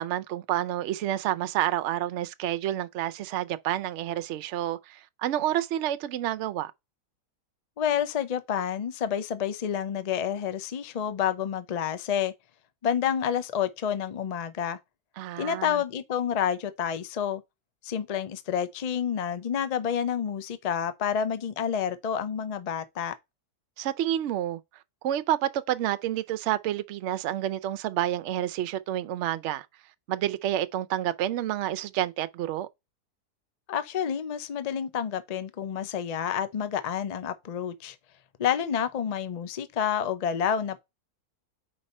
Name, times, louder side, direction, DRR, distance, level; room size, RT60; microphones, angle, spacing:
voice 1, 0.0-6.7 15.2-15.8 23.8-24.6 25.0-29.7 30.1-32.7, right 12 dB, 65° right, 0.7 m, -29 dB
voice 2, 7.8-12.3 12.8-14.8 15.4-17.4 17.8-23.1 33.7-38.0 38.4-40.8, left 8 dB, 65° left, 0.3 m, -29 dB
4.7 x 4.2 x 5.3 m
omnidirectional pair, 1.6 m